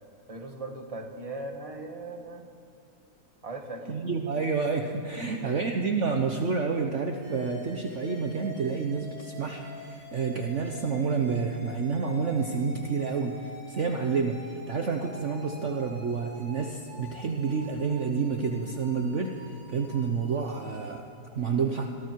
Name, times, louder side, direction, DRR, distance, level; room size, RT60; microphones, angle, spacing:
voice 1, 0.3-2.5 3.4-4.0 5.2-5.6, right 2 dB, 20° right, 3 dB, 1.8 m, -39 dB
voice 2, 3.9-21.0 21.3-21.9, right 5 dB, 50° right, 4 dB, 1.3 m, -29 dB
sound 1, 7.2-20.9, left 1 dB, 10° left, 6.5 m, -47 dB
27.0 x 22.5 x 4.7 m, 2.4 s
omnidirectional pair, 1.7 m